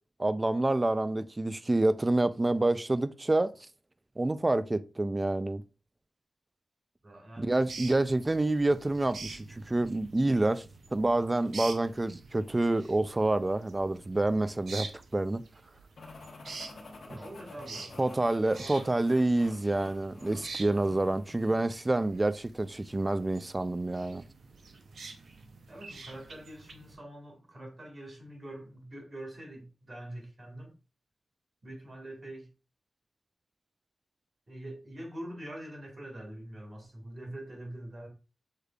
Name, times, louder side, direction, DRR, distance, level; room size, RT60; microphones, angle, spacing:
voice 1, 0.2-3.5 4.2-5.6 7.4-10.7 10.9-14.9 15.1-15.4 17.1-17.2 18.0-24.2, right 2 dB, 25° right, 0.3 m, -28 dB
voice 2, 7.0-7.6 17.1-18.0 18.6-18.9 25.7-30.7 31.6-32.5 34.5-38.1, right 1 dB, 40° right, 1.9 m, -44 dB
sound 1, 7.5-26.9, right 4 dB, 80° right, 0.6 m, -47 dB
sound 2, 16.0-21.8, left 3 dB, 75° left, 1.1 m, -50 dB
6.4 x 3.3 x 2.3 m
wide cardioid pair, 100°, 0 cm